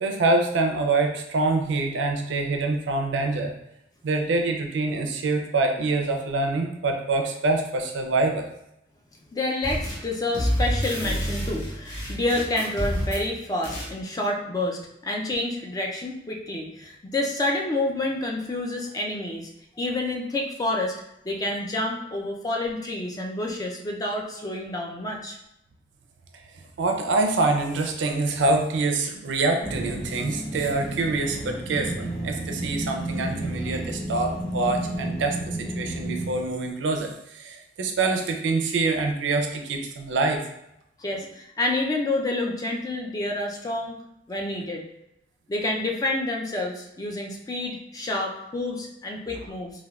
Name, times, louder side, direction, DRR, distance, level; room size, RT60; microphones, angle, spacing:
voice 1, 0.0-3.5 4.0-8.4 26.8-40.4, right 3 dB, 75° right, 3 dB, 0.4 m, -25 dB
voice 2, 9.3-19.5 19.8-20.9 21.2-25.4 41.0-44.0 44.3-44.8 45.5-49.7, left 2 dB, 20° left, 0 dB, 0.3 m, -28 dB
sound 1, 9.6-10.1 10.3-13.3 13.6-13.9, equal, 75° left, 1.0 m, -28 dB
sound 2, 29.6-36.4, right 1 dB, 55° left, 1.4 m, -32 dB
3.4 x 2.2 x 2.2 m, 0.81 s
head